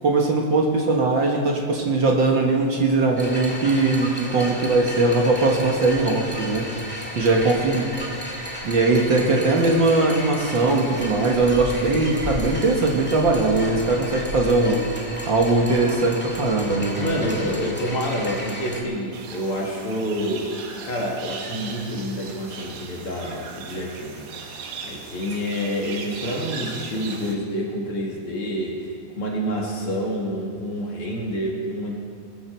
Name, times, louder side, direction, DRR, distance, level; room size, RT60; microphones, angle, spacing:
voice 1, 0.0-6.7 7.1-7.9 8.6-14.8 15.3-17.6, right 3 dB, 50° right, 0 dB, 1.6 m, -20 dB
sound 1, 3.2-18.8, left 1 dB, 5° left, 0.9 m, -33 dB
voice 2, 17.0-20.5 20.8-28.9 29.2-32.0, equal, 45° left, -2 dB, 2.7 m, -28 dB
sound 2, 19.1-27.3, right 5 dB, 70° right, 2.7 m, -38 dB
21.5 x 13.5 x 4.5 m, 2.4 s
omnidirectional pair, 3.7 m